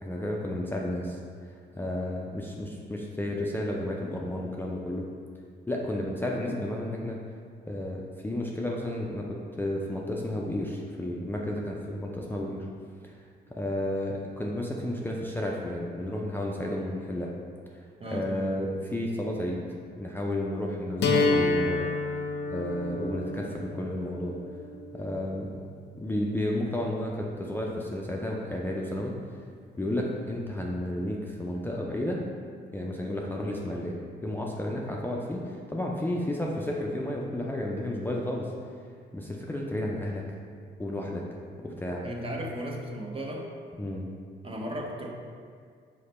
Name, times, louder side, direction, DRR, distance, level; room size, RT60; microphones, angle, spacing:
voice 1, 0.0-1.2 1.7-5.0 5.7-7.2 7.7-12.7 13.0-13.2 13.5-17.3 17.7-19.6 20.0-21.9 22.5-24.4 24.9-25.6 26.0-29.1 29.8-32.2 32.7-34.0 34.2-38.5 39.1-40.2 40.8-41.2 41.6-42.0 43.8-44.1, left 1 dB, 10° left, -2 dB, 0.4 m, -32 dB
voice 2, 18.0-18.5 42.0-43.4 44.4-45.1, right 1 dB, 30° right, 0 dB, 0.7 m, -35 dB
sound 1, 21.0-27.0, left 3 dB, 60° left, 0.6 m, -30 dB
4.8 x 2.2 x 4.1 m, 2.1 s
supercardioid pair, 70°, 19 cm